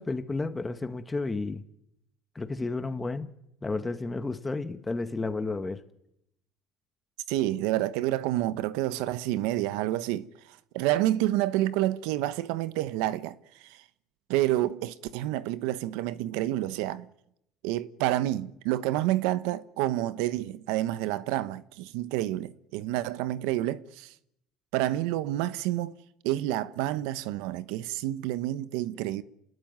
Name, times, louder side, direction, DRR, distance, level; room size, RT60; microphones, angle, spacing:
voice 1, 0.0-1.6 2.3-3.3 3.6-5.8, left 3 dB, 15° left, 1.5 m, -32 dB
voice 2, 7.3-10.3 10.7-13.3 13.6-13.8 14.3-17.1 17.6-24.1 24.7-25.9 26.2-29.2, right 15 dB, 80° right, 1.0 m, -29 dB
28.5 x 20.0 x 9.5 m
cardioid pair, 130°, 0 cm